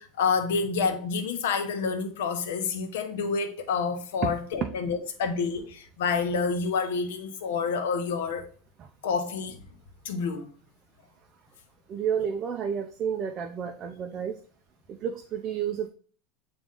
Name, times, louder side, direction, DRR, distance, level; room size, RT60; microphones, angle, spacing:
voice 1, 0.0-8.5 9.0-9.6 10.0-10.5, left 5 dB, 80° left, 1.0 m, -28 dB
voice 2, 11.9-14.4 14.9-15.9, right 8 dB, 30° right, 0.5 m, -30 dB
8.5 x 3.0 x 3.7 m
supercardioid pair, 160°, 0 cm